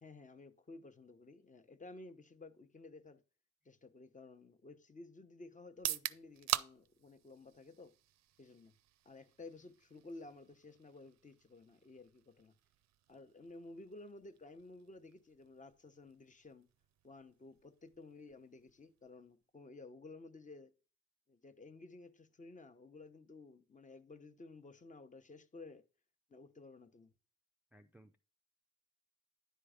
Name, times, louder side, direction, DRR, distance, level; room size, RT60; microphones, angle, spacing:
voice 1, 0.0-3.2 3.6-7.9 8.4-8.7 9.0-12.5 13.1-16.7 17.0-20.7 21.3-25.8 26.3-27.1, left 3 dB, 25° left, 0.9 m, -54 dB
sound 1, 5.7-19.5, right 13 dB, 60° right, 0.5 m, -47 dB
voice 2, 27.7-28.2, right 1 dB, 5° right, 0.4 m, -62 dB
10.5 x 3.8 x 4.9 m
cardioid pair, 90°, 30 cm